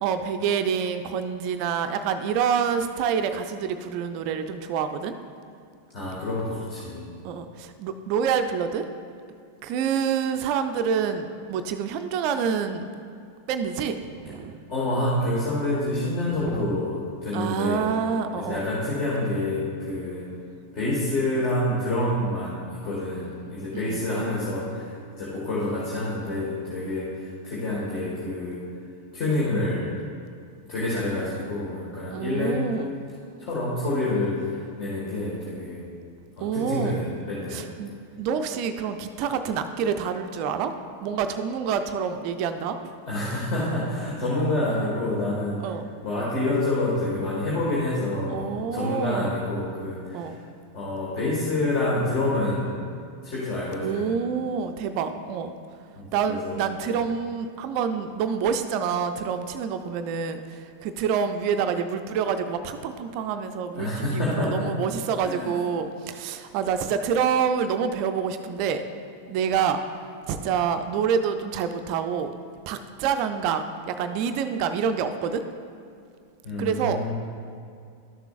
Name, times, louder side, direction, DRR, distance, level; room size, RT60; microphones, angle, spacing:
voice 1, 0.0-5.2 7.2-8.9 9.6-12.9 13.5-14.6 16.3-16.7 17.3-18.7 23.7-24.1 32.1-32.9 36.4-37.0 37.5-37.9 38.2-40.7 41.0-42.9 45.6-45.9 48.3-49.3 50.1-50.4 53.8-55.5 56.1-68.8 69.3-72.3 72.7-75.4 76.6-77.1, right 7 dB, 45° right, 8 dB, 0.4 m, -27 dB
voice 2, 5.9-7.0 14.7-17.9 18.4-20.3 20.7-28.7 29.1-29.9 30.7-32.6 33.4-35.8 36.4-37.6 43.1-45.6 46.0-50.3 50.7-52.7 53.2-54.2 56.0-56.6 63.7-64.7 65.2-65.5 76.4-77.1, left 1 dB, 40° left, -7 dB, 1.7 m, -27 dB
12.5 x 6.8 x 2.5 m, 2.4 s
figure-of-eight pair, 90°, 0 cm